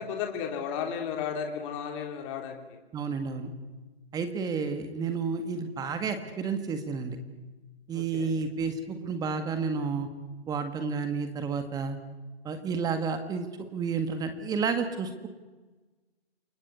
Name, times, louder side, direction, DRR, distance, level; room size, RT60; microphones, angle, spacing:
voice 1, 0.0-2.8 7.9-8.3, left 7 dB, 30° left, 4 dB, 3.4 m, -34 dB
voice 2, 2.9-3.5 4.1-7.2 7.9-10.1 10.5-12.0 12.4-13.5 13.7-15.3, right 5 dB, 10° right, 8 dB, 1.8 m, -31 dB
29.0 x 22.0 x 8.2 m, 1.2 s
hypercardioid pair, 145°, 31 cm